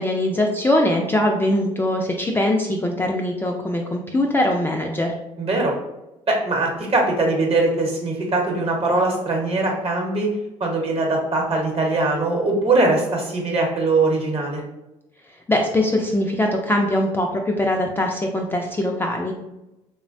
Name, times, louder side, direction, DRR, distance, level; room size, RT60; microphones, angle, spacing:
voice 1, 0.0-5.1 15.5-19.3, left 1 dB, 15° left, 0 dB, 0.3 m, -22 dB
voice 2, 5.4-5.7 6.3-10.3 10.6-14.6, right 2 dB, 40° right, 1 dB, 1.0 m, -21 dB
3.1 x 2.1 x 2.5 m, 0.94 s
supercardioid pair, 70°, 15 cm